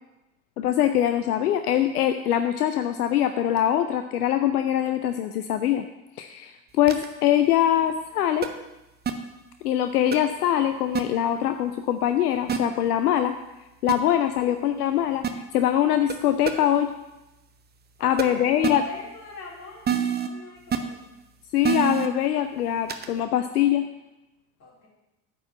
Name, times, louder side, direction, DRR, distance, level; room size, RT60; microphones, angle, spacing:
voice 1, 0.6-5.8 6.2-8.5 9.6-13.3 13.8-15.3 15.5-16.9 18.0-18.8 21.5-23.9, left 11 dB, 75° left, 8 dB, 0.6 m, -23 dB
sound 1, 6.9-7.1 8.4-8.5 9.1-9.2 10.1-10.2 11.0-11.1 12.5-12.6 13.9-14.0 15.2-15.3 16.1-16.2 16.5-16.6 18.2-18.3 18.6-18.7 19.9-20.3 20.7-20.8 21.6-22.1 22.9-23.1, right 8 dB, 20° right, 0.8 m, -24 dB
voice 2, 18.0-21.2 24.6-24.9, left 3 dB, 35° left, -3 dB, 3.5 m, -43 dB
9.4 x 4.5 x 7.1 m, 0.98 s
figure-of-eight pair, 60°, 46 cm